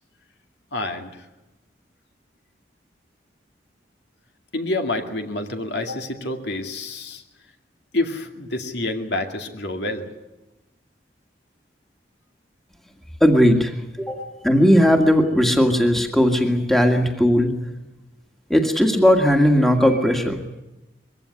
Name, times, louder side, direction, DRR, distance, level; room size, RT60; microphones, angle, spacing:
voice 1, 0.7-1.1 4.5-7.2 7.9-10.1 14.1-14.4, left 2 dB, 70° left, 5 dB, 2.4 m, -28 dB
voice 2, 13.2-14.2 14.4-17.5 18.5-20.4, equal, ahead, 3 dB, 1.8 m, -17 dB
22.5 x 16.0 x 9.8 m, 1.0 s
head